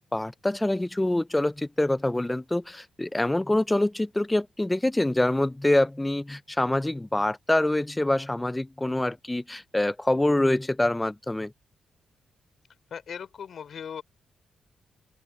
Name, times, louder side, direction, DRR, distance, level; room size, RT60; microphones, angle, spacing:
voice 1, 0.0-11.5, left 1 dB, 10° left, 0.5 m, -25 dB
voice 2, 12.9-14.0, left 7 dB, 60° left, 4.2 m, -38 dB
open air
cardioid pair, 110°, 0 cm